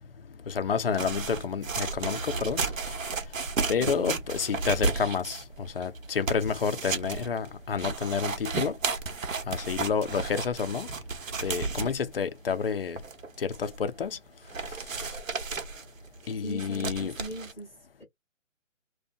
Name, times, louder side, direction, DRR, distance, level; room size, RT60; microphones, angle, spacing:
voice 1, 0.5-3.0 3.7-8.8 9.5-10.9 11.4-13.0 13.4-14.2 14.7-15.1 16.3-17.2, left 6 dB, 45° left, 0.5 m, -30 dB
sound 1, 0.9-12.2 12.6-12.7 13.0-13.8 14.0-14.1 14.5-17.5, right 4 dB, 85° right, 0.9 m, -33 dB
voice 2, 3.8-4.2 16.4-17.7, right 1 dB, 5° left, 0.8 m, -39 dB
2.7 x 2.3 x 2.2 m
hypercardioid pair, 155°, 39 cm